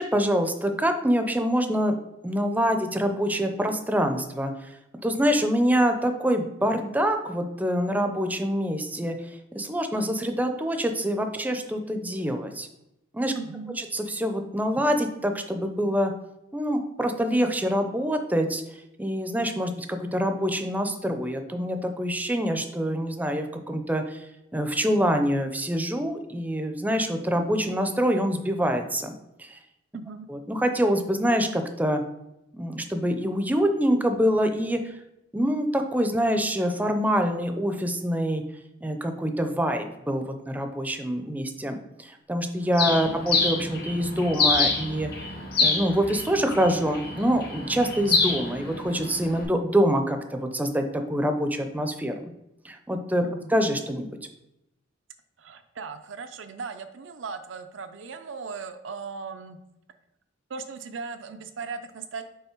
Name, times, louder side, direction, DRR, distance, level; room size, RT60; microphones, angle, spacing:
voice 1, 0.0-2.0 2.2-4.5 5.0-9.2 9.5-12.7 13.1-13.3 13.9-16.1 16.5-18.6 19.0-24.2 24.5-29.1 29.4-29.6 30.3-32.0 32.5-34.8 35.3-38.4 38.8-45.3 45.6-52.3 52.6-53.2 53.5-54.1, equal, 10° right, 6 dB, 0.5 m, -25 dB
voice 2, 13.3-13.8 29.9-30.3 43.1-43.2 53.2-53.5 55.4-59.6 60.5-62.2, right 4 dB, 90° right, 9 dB, 0.6 m, -38 dB
Bird, 42.7-49.4, left 4 dB, 55° left, 1.1 m, -27 dB
5.5 x 4.0 x 4.5 m, 0.88 s
head